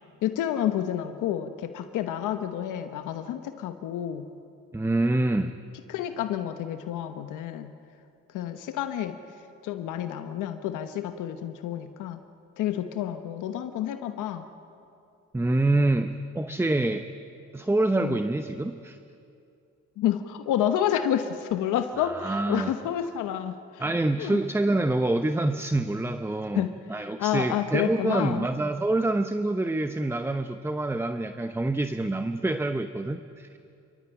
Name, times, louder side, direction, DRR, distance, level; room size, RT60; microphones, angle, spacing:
voice 1, 0.2-4.3 5.9-7.7 8.3-9.2 9.6-12.2 12.6-14.4 18.0-18.2 20.0-23.8 24.2-24.4 26.5-26.7 27.0-28.4, left 10 dB, 90° left, 8 dB, 1.1 m, -29 dB
voice 2, 4.7-5.5 15.3-17.1 17.5-19.0 22.0-22.7 23.8-33.6, right 2 dB, 10° right, 9 dB, 0.8 m, -26 dB
29.5 x 13.5 x 9.1 m, 2.6 s
cardioid pair, 90°, 30 cm